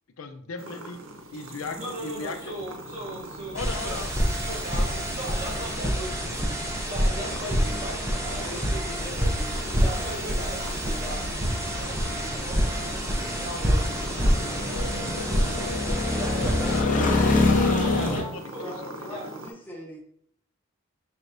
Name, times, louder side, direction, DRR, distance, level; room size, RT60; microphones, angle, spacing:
voice 1, 0.2-1.0 1.3-2.5 3.5-4.1 4.8-5.0 15.6-19.1, left 4 dB, 90° left, 6 dB, 0.5 m, -37 dB
sound 1, 0.6-19.5, right 1 dB, 75° right, 0.6 m, -41 dB
voice 2, 1.8-14.7 16.1-16.6 17.5-18.7 19.1-19.3, right 1 dB, 35° right, -9 dB, 1.0 m, -39 dB
sound 2, 2.1-18.2, left 2 dB, 35° left, 0.7 m, -29 dB
sound 3, 3.5-16.8, equal, 15° right, 0.6 m, -27 dB
voice 3, 18.5-20.0, equal, 10° left, -3 dB, 0.9 m, -41 dB
4.5 x 3.3 x 2.5 m, 0.66 s
head